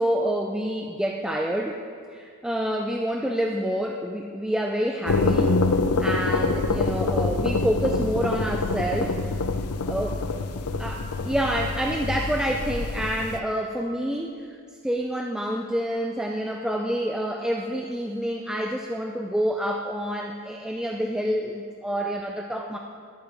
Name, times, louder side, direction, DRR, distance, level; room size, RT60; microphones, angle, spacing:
voice 1, 0.0-1.8 2.1-5.5 6.0-9.2 9.9-10.2 10.8-14.5 14.8-22.8, equal, 5° right, 1 dB, 0.5 m, -27 dB
sound 1, 5.0-13.4, left 3 dB, 85° left, 0.6 m, -26 dB
20.5 x 8.9 x 3.5 m, 2.3 s
head